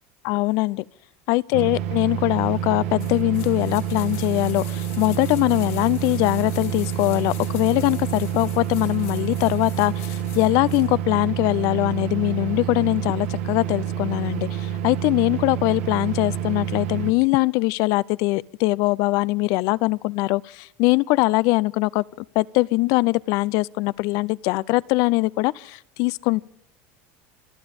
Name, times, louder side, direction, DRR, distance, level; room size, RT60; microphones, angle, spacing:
voice 1, 0.2-0.8 1.3-22.0 22.3-26.4, left 22 dB, 65° left, 0.5 m, -22 dB
sound 1, 1.5-17.1, right 10 dB, 80° right, 1.4 m, -28 dB
sound 2, 3.0-10.9 11.2-11.3, left 14 dB, 85° left, 3.8 m, -44 dB
27.0 x 9.5 x 5.2 m
supercardioid pair, 115°, 7 cm